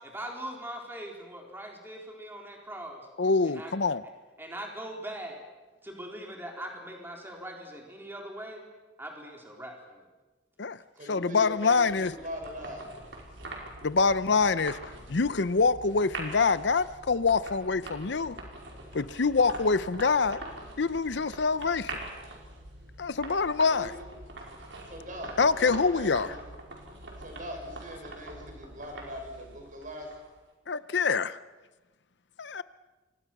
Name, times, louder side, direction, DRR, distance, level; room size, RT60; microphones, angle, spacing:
voice 1, 0.0-3.0 3.4-3.7 4.4-5.4 5.8-8.7 9.0-10.1, right 1 dB, 10° right, 0 dB, 4.2 m, -41 dB
voice 2, 3.2-4.0 10.6-10.8 11.1-12.1 13.8-14.8 15.1-18.4 18.9-20.4 20.8-22.0 23.0-23.9 25.4-26.3 30.7-31.4 32.4-32.6, left 4 dB, 65° left, 15 dB, 0.7 m, -25 dB
voice 3, 11.0-12.9 23.7-24.0 24.9-26.4 27.2-30.1, equal, 45° right, 2 dB, 6.5 m, -41 dB
sound 1, 11.4-30.4, right 2 dB, 75° right, 5.2 m, -44 dB
28.0 x 23.5 x 6.1 m, 1.2 s
head